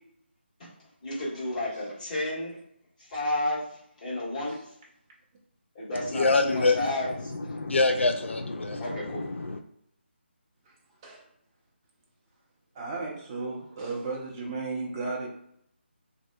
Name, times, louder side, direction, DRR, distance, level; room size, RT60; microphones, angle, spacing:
voice 1, 0.6-2.6 3.0-4.6 5.7-7.1 8.8-9.3, left 1 dB, 40° left, 1.4 m, -32 dB
voice 2, 6.0-9.6, left 3 dB, 80° left, 0.3 m, -26 dB
voice 3, 12.7-15.3, right 3 dB, 20° right, 0.5 m, -34 dB
2.6 x 2.4 x 2.2 m
figure-of-eight pair, 155°, 6 cm